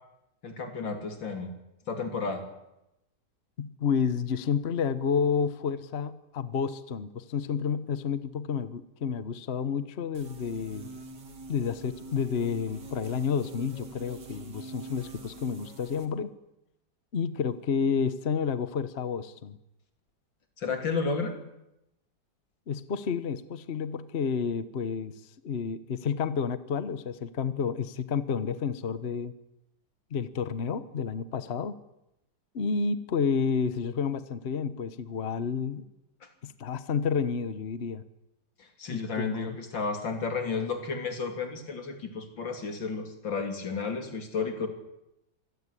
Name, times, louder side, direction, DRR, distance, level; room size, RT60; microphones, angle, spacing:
voice 1, 0.4-1.5 1.9-2.4 20.6-21.4 36.2-36.3 38.6-44.7, left 4 dB, 90° left, 6 dB, 3.9 m, -32 dB
voice 2, 3.6-10.9 11.5-16.3 17.1-19.6 22.7-25.1 25.4-29.4 30.1-31.7 32.5-35.8 36.4-38.0 38.9-39.6, left 6 dB, 40° left, 14 dB, 1.2 m, -30 dB
sound 1, 10.1-16.1, right 3 dB, 65° right, 2.9 m, -45 dB
25.5 x 17.0 x 10.0 m, 0.89 s
omnidirectional pair, 2.0 m